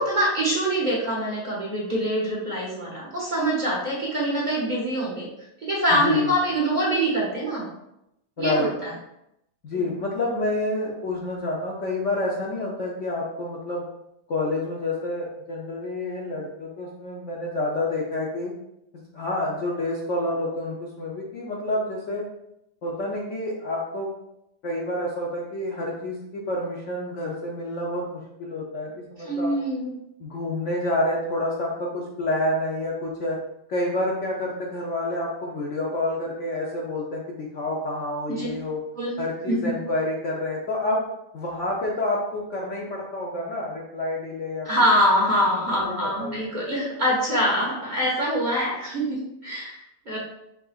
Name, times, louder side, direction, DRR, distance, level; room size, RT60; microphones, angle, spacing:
voice 1, 0.0-5.3 5.6-7.6 8.4-8.9 29.2-30.0 38.3-38.5 39.0-39.1 39.5-39.7 44.6-50.2, equal, 30° right, -5 dB, 1.2 m, -24 dB
voice 2, 5.9-6.3 8.4-8.7 9.6-13.8 14.3-18.5 19.1-22.2 22.8-24.1 24.6-29.5 30.2-33.4 33.7-38.8 39.2-41.0 41.3-44.7 45.7-46.4, left 1 dB, 55° left, -3 dB, 0.9 m, -28 dB
5.3 x 4.1 x 2.4 m, 0.82 s
omnidirectional pair, 1.8 m